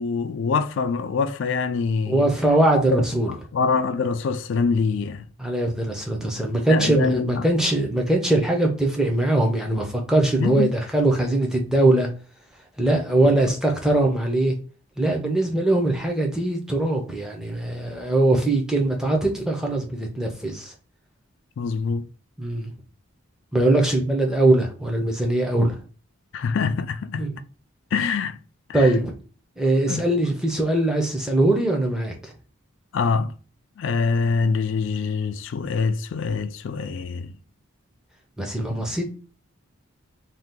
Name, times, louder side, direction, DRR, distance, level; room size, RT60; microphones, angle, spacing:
voice 1, 0.0-2.3 2.9-5.3 6.7-7.5 10.4-10.8 13.2-13.3 21.6-22.1 26.3-27.3 27.9-28.4 28.7-28.9 29.9-30.1 32.9-33.3 33.8-37.3, left 5 dB, 60° left, 0.3 m, -25 dB
voice 2, 2.1-3.3 5.4-12.1 12.8-14.5 15.0-20.7 22.4-22.7 23.5-25.8 27.2-27.3 28.7-29.1 29.6-32.3 38.4-39.0, right 1 dB, 5° right, 0.6 m, -21 dB
2.8 x 2.3 x 3.5 m
head